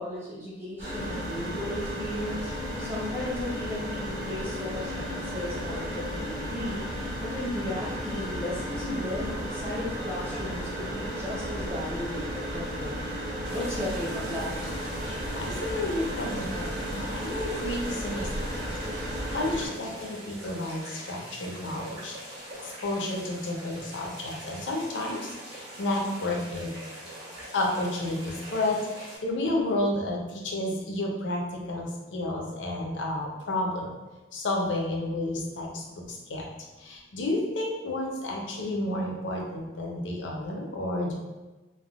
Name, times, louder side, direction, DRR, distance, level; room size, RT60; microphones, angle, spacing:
voice 1, 0.0-2.5 2.8-12.9 13.3-14.5, left 1 dB, 10° right, -7 dB, 0.6 m, -35 dB
sound 1, 0.8-19.7, equal, 45° right, 1.3 m, -34 dB
sound 2, 13.4-29.2, right 1 dB, 90° right, 1.2 m, -43 dB
voice 2, 15.3-18.5 19.3-22.2 22.6-26.7 27.5-28.8 29.2-31.4 31.7-33.9 34.3-36.4 36.8-41.1, left 1 dB, 75° left, 0 dB, 0.5 m, -31 dB
3.3 x 2.1 x 2.3 m, 1.1 s
head